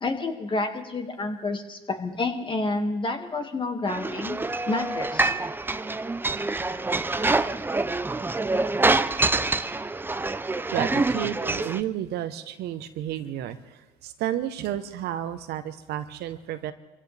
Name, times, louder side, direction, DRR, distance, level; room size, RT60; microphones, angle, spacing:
voice 1, 0.0-4.4 4.7-5.3, left 3 dB, 30° left, 5 dB, 2.1 m, -29 dB
sound 1, 3.9-11.8, right 3 dB, 10° right, 0.6 m, -26 dB
voice 2, 10.7-16.7, right 12 dB, 70° right, 10 dB, 1.1 m, -32 dB
25.0 x 16.0 x 3.5 m, 1.1 s
supercardioid pair, 85°, 18 cm